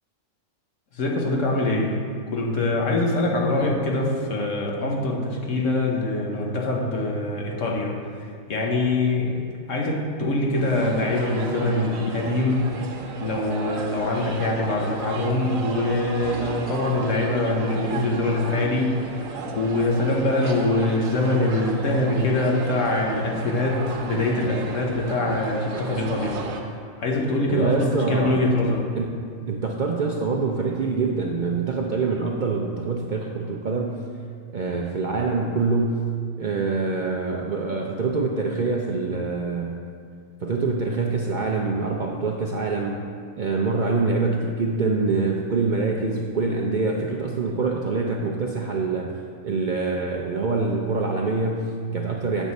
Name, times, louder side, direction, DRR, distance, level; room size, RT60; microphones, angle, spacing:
voice 1, 0.9-2.0 2.3-8.0 8.5-9.4 9.7-12.9 13.2-26.4 27.0-28.9, left 2 dB, 70° left, -1 dB, 1.4 m, -24 dB
sound 1, 10.6-26.6, right 3 dB, 85° right, 1.2 m, -34 dB
voice 2, 27.5-28.4 28.9-29.2 29.5-34.0 34.5-36.0 36.4-39.8 40.4-43.0 43.4-49.1 49.4-52.5, right 4 dB, 55° right, 0 dB, 0.5 m, -25 dB
8.2 x 6.4 x 4.1 m, 2.2 s
omnidirectional pair, 1.4 m